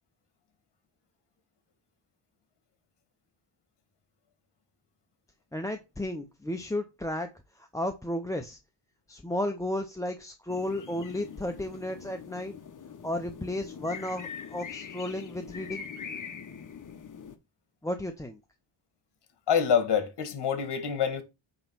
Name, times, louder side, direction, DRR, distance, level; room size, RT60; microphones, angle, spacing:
voice 1, 5.5-7.3 7.6-8.6 9.1-12.5 13.0-15.8 17.8-18.4, left 1 dB, 5° left, 0.5 m, -33 dB
sound 1, 10.5-17.4, left 6 dB, 40° left, 0.9 m, -43 dB
voice 2, 19.5-21.2, left 7 dB, 55° left, 1.7 m, -26 dB
8.7 x 3.0 x 5.8 m
wide cardioid pair, 135°, 47 cm